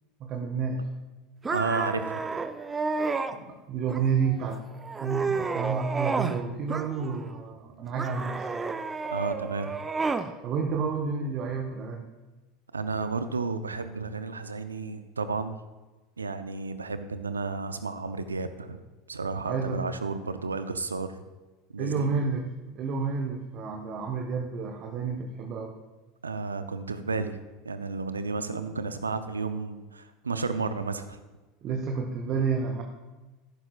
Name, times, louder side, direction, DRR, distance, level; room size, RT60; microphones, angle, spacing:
voice 1, 0.2-0.9 3.3-4.6 5.0-8.5 10.4-12.1 19.4-19.8 21.8-22.4 22.7-25.8 31.6-32.8, right 5 dB, 45° right, 3 dB, 1.2 m, -30 dB
sound 1, 1.4-3.3 3.9-4.4 4.8-6.4 6.7-7.4 8.0-10.3, right 4 dB, 20° right, 0.7 m, -31 dB
voice 2, 1.5-2.2 9.1-9.8 12.7-15.6 16.2-18.8 19.1-21.2 21.7-22.1 26.2-31.2, right 4 dB, 85° right, 11 dB, 0.6 m, -32 dB
13.5 x 11.5 x 2.4 m, 1.2 s
figure-of-eight pair, 80°, 0 cm